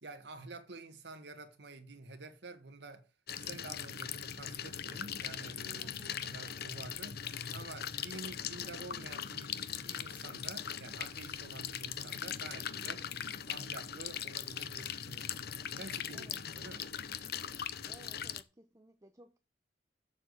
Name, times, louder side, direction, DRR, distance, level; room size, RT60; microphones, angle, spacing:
voice 1, 0.0-3.1 3.4-13.1 13.4-15.3 15.8-16.9, right 3 dB, 70° right, 1.5 m, -49 dB
sound 1, 3.3-18.4, left 8 dB, 60° left, 0.8 m, -40 dB
voice 2, 5.8-6.2 16.1-16.4 17.8-19.4, right 1 dB, 20° right, 0.8 m, -59 dB
7.3 x 7.1 x 8.0 m
head